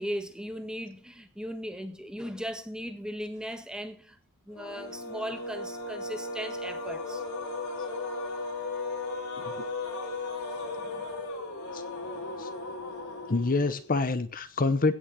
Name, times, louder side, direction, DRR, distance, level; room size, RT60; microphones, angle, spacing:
voice 1, 0.0-4.2 4.5-7.2 10.7-11.0 12.1-12.3, equal, 5° right, 1.4 m, -38 dB
sound 1, 4.5-13.9, left 3 dB, 80° left, 3.5 m, -36 dB
voice 2, 13.3-14.9, left 3 dB, 40° left, 0.8 m, -27 dB
16.5 x 6.4 x 6.1 m
head